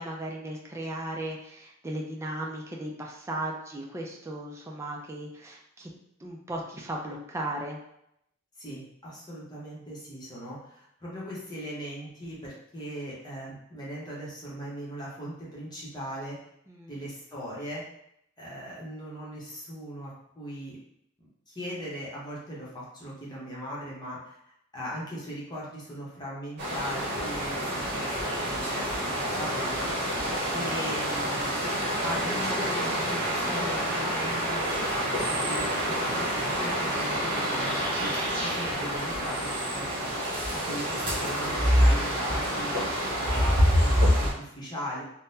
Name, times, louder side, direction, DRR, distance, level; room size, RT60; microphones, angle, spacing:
voice 1, 0.0-5.9 6.2-7.8 16.7-17.0, right 1 dB, 15° right, -1 dB, 0.4 m, -36 dB
voice 2, 8.6-16.4 16.9-17.8 18.4-20.1 20.4-20.8 21.2-24.4 24.7-29.9 30.5-31.6 32.0-45.0, equal, 20° left, -6 dB, 0.9 m, -39 dB
sound 1, 26.6-44.3, equal, 55° right, 1.1 m, -27 dB
3.7 x 2.2 x 2.7 m, 0.77 s
head